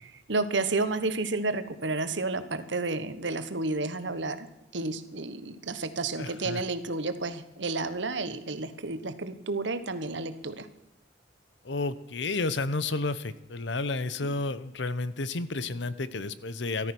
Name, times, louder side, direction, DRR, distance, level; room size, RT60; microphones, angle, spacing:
voice 1, 0.3-4.5 4.7-10.7 14.2-14.4, right 3 dB, 75° right, 11 dB, 1.3 m, -31 dB
voice 2, 6.2-6.6 11.6-16.9, left 3 dB, 70° left, 15 dB, 0.9 m, -31 dB
14.0 x 13.0 x 6.1 m, 0.88 s
head